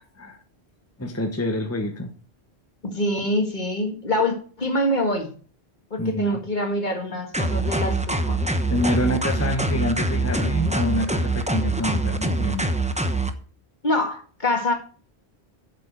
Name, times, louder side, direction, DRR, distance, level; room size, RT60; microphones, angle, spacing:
voice 1, 1.0-2.1 6.0-6.4 8.7-12.7, left 1 dB, 15° left, 4 dB, 1.1 m, -26 dB
voice 2, 2.8-5.3 5.9-8.4 13.8-14.7, left 1 dB, 45° left, 4 dB, 2.0 m, -25 dB
sound 1, 7.3-13.3, right 2 dB, 5° right, 0.8 m, -24 dB
7.6 x 7.3 x 6.6 m, 0.41 s
omnidirectional pair, 1.1 m